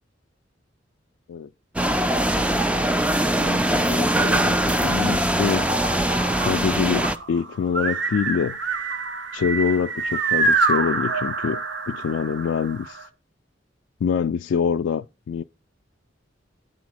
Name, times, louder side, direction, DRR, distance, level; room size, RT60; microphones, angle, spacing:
sound 1, 1.8-7.2, right 1 dB, 5° right, 0.4 m, -22 dB
voice 1, 3.2-5.7 6.4-8.6 9.3-13.0 14.0-15.4, left 6 dB, 90° left, 0.3 m, -25 dB
sound 2, 5.5-13.1, right 4 dB, 70° right, 1.1 m, -27 dB
9.4 x 4.0 x 6.2 m
head